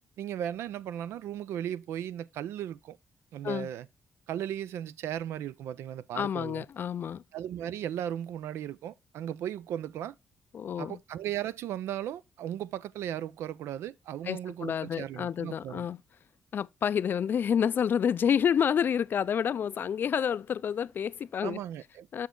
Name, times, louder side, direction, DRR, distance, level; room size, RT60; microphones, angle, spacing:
voice 1, 0.2-3.0 3.3-3.9 4.3-6.6 7.3-10.2 10.8-15.9 21.4-22.3, right 11 dB, 90° right, 0.4 m, -36 dB
voice 2, 6.1-7.2 10.5-11.0 14.3-16.0 16.5-21.6 22.1-22.3, left 8 dB, 50° left, 0.3 m, -29 dB
7.2 x 5.6 x 3.7 m
cardioid pair, 95°, 4 cm